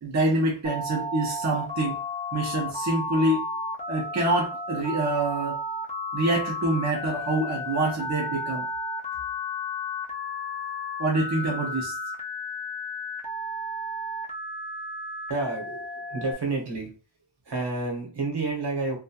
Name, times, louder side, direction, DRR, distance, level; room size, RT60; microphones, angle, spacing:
voice 1, 0.0-2.0 2.3-3.4 3.9-5.6 6.1-8.7 11.0-12.0, right 2 dB, 35° right, -2 dB, 0.7 m, -26 dB
Telephone, 0.6-16.3, left 1 dB, 15° left, 0.6 m, -33 dB
voice 2, 15.3-16.9 17.4-19.0, right 3 dB, 55° right, 0 dB, 1.0 m, -30 dB
2.7 x 2.2 x 2.8 m, 0.35 s
wide cardioid pair, 65°, 48 cm